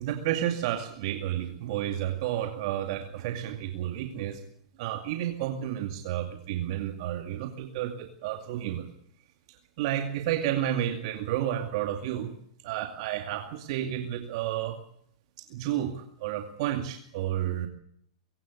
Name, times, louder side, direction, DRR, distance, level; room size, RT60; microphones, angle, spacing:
voice 1, 0.0-4.4 4.8-8.9 9.5-12.4 12.6-14.8 15.4-17.7, right 11 dB, 55° right, 6 dB, 2.3 m, -31 dB
23.0 x 17.0 x 8.2 m, 0.70 s
hypercardioid pair, 110°, 4 cm